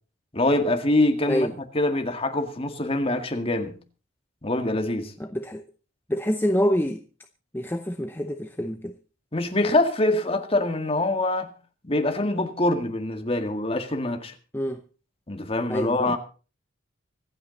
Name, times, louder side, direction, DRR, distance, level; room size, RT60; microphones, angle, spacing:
voice 1, 0.3-1.5 1.7-3.8 4.4-5.1 9.3-11.5 11.8-14.3 15.3-16.2, left 2 dB, 30° left, 2.0 m, -24 dB
voice 2, 5.2-5.6 6.1-7.0 7.5-8.9 14.5-14.8 15.7-16.2, equal, 10° left, 0.7 m, -26 dB
25.5 x 9.0 x 4.0 m
head